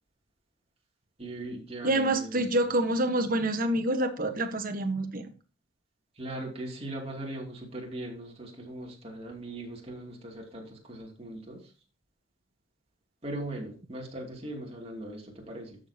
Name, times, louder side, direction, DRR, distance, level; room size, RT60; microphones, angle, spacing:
voice 1, 1.2-2.5 6.2-11.6 13.2-15.8, right 1 dB, 30° right, 2.6 m, -39 dB
voice 2, 1.8-5.3, right 1 dB, 50° right, 1.2 m, -27 dB
12.5 x 6.9 x 2.8 m
head